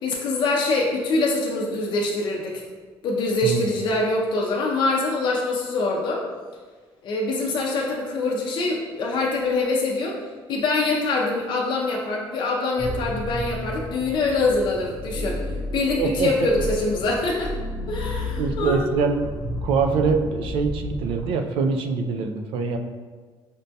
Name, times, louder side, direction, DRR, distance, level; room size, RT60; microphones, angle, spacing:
voice 1, 0.0-2.6 3.0-6.2 7.0-10.2 10.5-15.4 15.7-17.5 17.9-18.9, left 2 dB, 55° left, -2 dB, 0.5 m, -24 dB
sound 1, 12.8-21.3, left 1 dB, 25° right, 0.6 m, -32 dB
voice 2, 16.0-16.3 18.4-19.3 19.6-22.8, right 5 dB, 80° right, 5 dB, 0.4 m, -24 dB
5.1 x 2.2 x 2.6 m, 1.4 s
cardioid pair, 125°, 9 cm